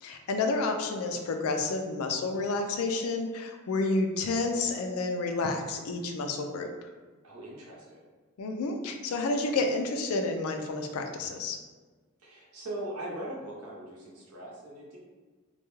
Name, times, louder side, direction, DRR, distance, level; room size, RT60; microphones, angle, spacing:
voice 1, 0.0-6.7 8.4-11.6, left 3 dB, 70° left, 4 dB, 0.4 m, -30 dB
voice 2, 7.2-8.0 12.2-15.0, right 1 dB, 75° right, -4 dB, 0.8 m, -40 dB
2.3 x 2.2 x 3.0 m, 1.3 s
head